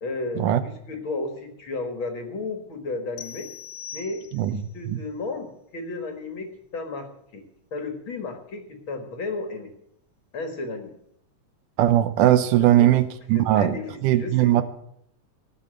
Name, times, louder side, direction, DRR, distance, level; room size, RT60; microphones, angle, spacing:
voice 1, 0.0-3.5 3.9-4.2 4.5-7.4 7.7-9.7 10.3-10.9 12.6-12.9 13.3-14.6, left 3 dB, 50° left, 5 dB, 2.0 m, -33 dB
sound 1, 3.2-4.7, left 8 dB, 80° left, 2.1 m, -41 dB
voice 2, 4.3-5.0 11.8-13.8 14.0-14.6, right 12 dB, 85° right, 12 dB, 2.4 m, -20 dB
17.5 x 6.2 x 7.6 m, 0.74 s
omnidirectional pair, 3.5 m